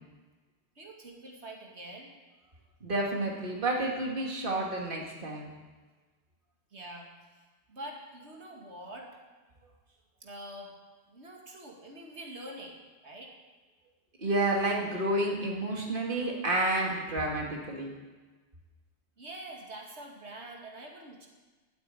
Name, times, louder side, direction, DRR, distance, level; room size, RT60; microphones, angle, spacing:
voice 1, 0.8-2.1 6.7-7.1 7.7-9.1 10.2-10.7 11.1-13.3 19.2-21.3, right 1 dB, 85° right, 0 dB, 2.6 m, -45 dB
voice 2, 2.8-5.5 14.2-17.9, right 1 dB, 50° right, -1 dB, 2.4 m, -30 dB
12.5 x 9.5 x 9.2 m, 1.3 s
omnidirectional pair, 1.1 m